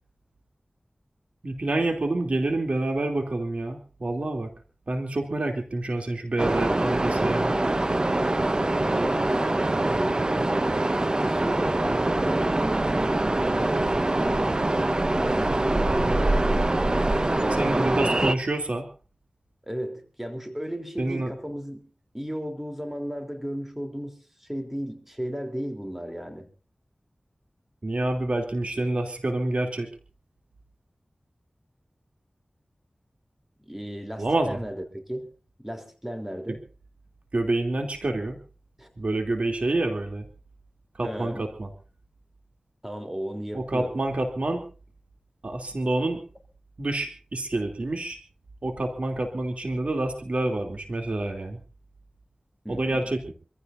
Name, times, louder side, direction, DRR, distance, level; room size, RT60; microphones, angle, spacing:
voice 1, 1.4-4.5 4.9-7.5 15.8-16.2 17.6-18.8 21.0-21.3 27.8-29.9 34.2-34.6 37.3-38.4 39.0-40.3 41.0-41.7 43.5-44.6 45.4-46.2 46.8-48.2 48.6-51.6 52.7-53.3, right 2 dB, 65° right, 4 dB, 3.1 m, -27 dB
sound 1, 6.4-18.3, right 2 dB, 35° right, 0.9 m, -24 dB
voice 2, 8.8-10.5 11.0-14.6 15.2-16.1 17.2-18.4 19.6-21.9 22.1-26.5 33.6-35.3 35.6-36.6 38.8-38.9 41.0-41.4 42.8-43.9 52.6-53.0, equal, 10° right, 5 dB, 3.6 m, -35 dB
26.5 x 15.5 x 2.7 m, 0.36 s
wide cardioid pair, 50°, 2 cm